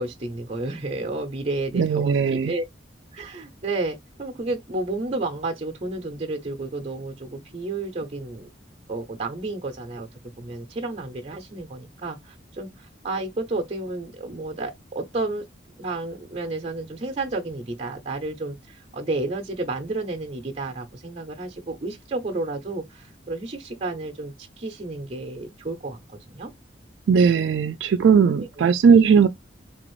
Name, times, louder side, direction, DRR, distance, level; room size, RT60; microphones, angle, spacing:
voice 1, 0.0-2.6 3.1-8.5 8.9-10.1 10.4-15.4 15.8-26.5 28.4-28.7, right 2 dB, 35° right, 0.6 m, -31 dB
voice 2, 1.7-2.5 27.1-29.3, right 6 dB, 70° right, 0.3 m, -18 dB
3.4 x 2.5 x 3.0 m
head